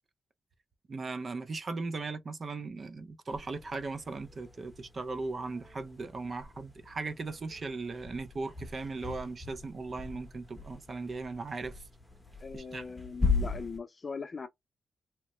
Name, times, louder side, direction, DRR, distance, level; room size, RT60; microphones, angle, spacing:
voice 1, 0.9-11.8 12.5-12.9 13.2-13.3, right 3 dB, 45° right, 0.5 m, -38 dB
sound 1, 3.3-13.8, left 4 dB, ahead, 1.0 m, -38 dB
voice 2, 12.4-14.5, left 5 dB, 40° left, 0.6 m, -40 dB
2.9 x 2.1 x 3.0 m
cardioid pair, 95°, 0 cm